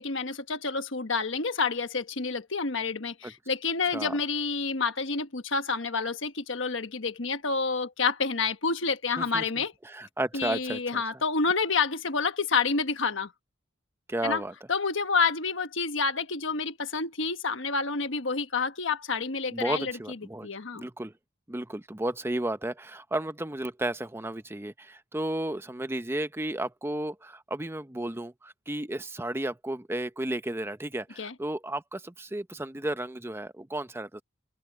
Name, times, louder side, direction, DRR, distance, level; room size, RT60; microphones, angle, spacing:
voice 1, 0.0-9.7 10.3-13.3 14.2-14.4 14.7-20.9 31.2-31.3, left 4 dB, 65° left, 1.4 m, -29 dB
voice 2, 9.9-11.0 14.1-14.5 19.5-20.5 20.7-21.1 21.5-34.2, right 1 dB, 10° right, 0.8 m, -33 dB
open air
head